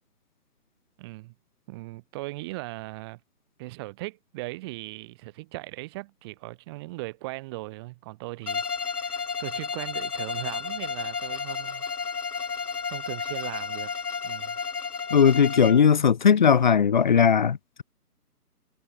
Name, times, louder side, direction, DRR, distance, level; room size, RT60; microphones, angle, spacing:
voice 1, 1.0-1.3 1.7-3.2 3.6-11.8 12.9-13.9 14.2-14.6, right 22 dB, 15° right, 5.1 m, -38 dB
Bowed string instrument, 8.5-15.9, left 5 dB, 70° left, 4.3 m, -32 dB
voice 2, 15.1-17.8, left 7 dB, 30° left, 1.6 m, -19 dB
hypercardioid pair, 170°, 47 cm